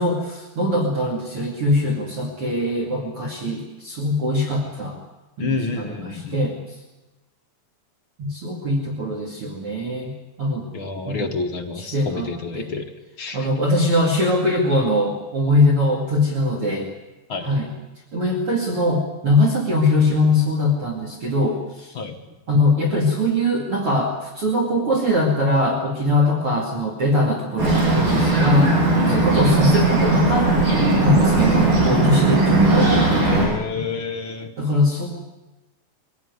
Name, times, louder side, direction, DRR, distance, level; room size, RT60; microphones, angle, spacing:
voice 1, 0.0-5.0 5.4-6.7 8.2-10.1 10.4-10.7 11.1-11.3 11.8-12.7 13.3-16.9 17.4-17.7 18.1-21.9 22.5-28.8 29.1-30.5 31.0-32.9 34.6-35.1, left 1 dB, 45° right, 1 dB, 3.1 m, -21 dB
voice 2, 5.4-6.4 10.7-12.9 13.2-13.5 17.3-17.6 21.9-22.1 28.9-29.4 33.3-34.5, left 4 dB, 50° left, 3 dB, 1.7 m, -29 dB
Bird, 27.6-33.5, right 2 dB, 80° right, 9.1 m, -18 dB
22.5 x 16.0 x 9.6 m, 1.1 s
omnidirectional pair, 3.8 m